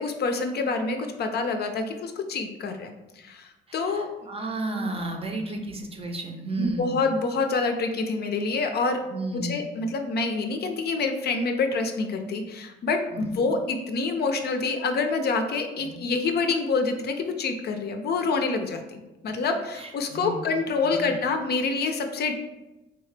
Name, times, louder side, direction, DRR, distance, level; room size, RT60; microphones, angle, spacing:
voice 1, 0.0-4.1 4.7-5.0 5.5-5.6 6.6-9.0 9.3-22.3, left 4 dB, 55° left, 5 dB, 0.5 m, -27 dB
voice 2, 3.7-7.0 9.1-9.7 13.1-13.3 15.8-16.0 19.8-20.4 20.8-21.1, right 2 dB, 30° right, 3 dB, 0.6 m, -33 dB
3.6 x 2.8 x 3.2 m, 1.0 s
cardioid pair, 90°, 20 cm